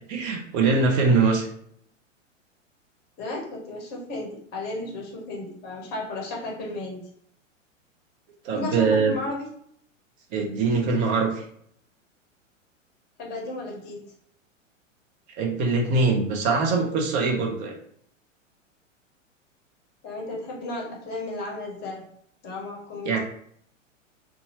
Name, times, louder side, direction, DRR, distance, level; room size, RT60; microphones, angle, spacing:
voice 1, 0.1-1.5 8.4-9.1 10.3-11.4 15.4-17.7 23.1-23.2, right 4 dB, 35° right, 1 dB, 0.7 m, -22 dB
voice 2, 3.2-7.0 8.5-9.5 13.2-14.0 20.0-22.0 22.4-23.2, left 2 dB, 25° left, -1 dB, 0.8 m, -34 dB
2.7 x 2.4 x 2.8 m, 0.65 s
figure-of-eight pair, 100°, 39 cm